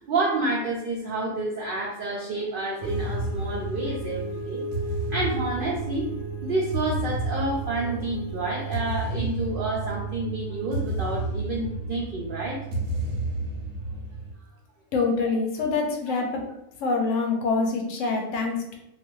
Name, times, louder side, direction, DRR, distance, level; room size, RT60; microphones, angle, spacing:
voice 1, 0.0-4.6 5.1-6.1 6.4-12.6, right 2 dB, 75° right, -3 dB, 0.5 m, -29 dB
sound 1, 2.8-14.3, right 2 dB, 90° right, 1.1 m, -31 dB
voice 2, 14.9-16.4 16.8-18.8, left 4 dB, 70° left, 2 dB, 0.9 m, -25 dB
2.4 x 2.4 x 3.0 m, 0.89 s
omnidirectional pair, 1.4 m